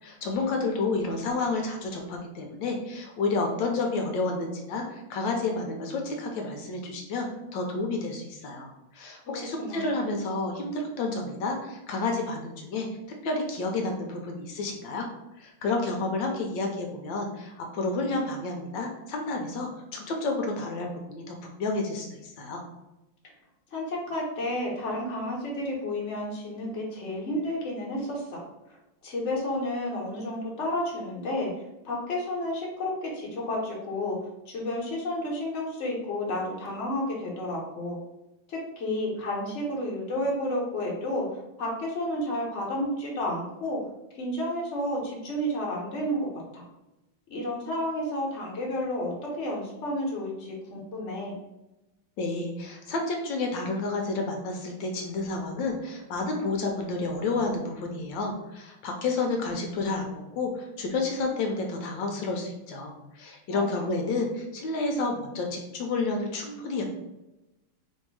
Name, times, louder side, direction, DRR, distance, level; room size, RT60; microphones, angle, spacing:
voice 1, 0.0-7.3 7.5-12.9 13.2-15.1 15.4-22.6 52.2-66.9, left 3 dB, 75° left, 2 dB, 1.2 m, -30 dB
voice 2, 9.2-10.0 23.7-28.4 29.0-31.5 31.8-34.2 34.5-38.0 38.5-41.3 41.6-43.8 44.1-46.6 47.3-51.4 63.5-63.8, left 1 dB, 45° left, -3 dB, 1.0 m, -31 dB
3.2 x 2.7 x 4.5 m, 0.96 s
omnidirectional pair, 2.2 m